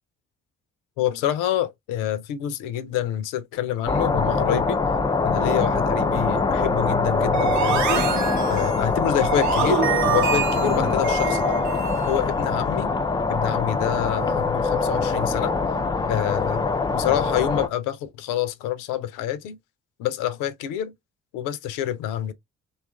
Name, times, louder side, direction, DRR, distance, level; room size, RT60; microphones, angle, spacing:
voice 1, 1.0-4.8 5.2-8.0 8.5-11.6 12.1-12.9 13.3-15.5 16.1-16.7 16.9-19.6 20.0-20.9 21.3-22.3, left 11 dB, 70° left, 0.5 m, -27 dB
sound 1, 3.9-17.7, left 4 dB, 15° left, 0.3 m, -23 dB
sound 2, 7.3-12.2, right 7 dB, 60° right, 0.7 m, -26 dB
2.7 x 2.3 x 2.2 m
hypercardioid pair, 45°, 33 cm